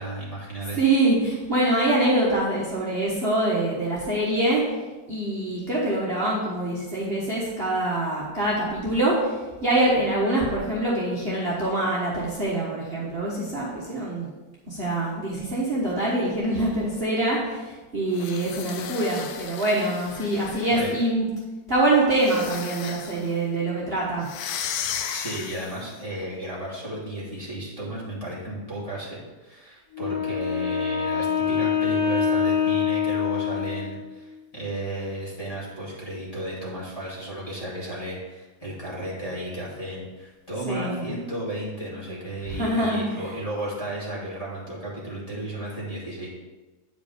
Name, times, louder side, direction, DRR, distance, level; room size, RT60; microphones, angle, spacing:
voice 1, 0.0-0.8 20.7-21.0 25.1-46.3, right 1 dB, 20° left, -7 dB, 2.4 m, -34 dB
voice 2, 0.7-4.6 5.1-9.3 9.6-14.3 14.7-21.3 21.7-24.3 40.7-41.1 42.5-43.0, right 1 dB, 35° right, -7 dB, 1.4 m, -24 dB
sound 1, 18.1-21.1 22.2-23.3 24.2-25.9, left 8 dB, 70° left, 0.9 m, -35 dB
Wind instrument woodwind instrument, 29.9-34.2, left 7 dB, 45° left, 2.1 m, -25 dB
9.2 x 5.1 x 5.0 m, 1.2 s
omnidirectional pair, 2.1 m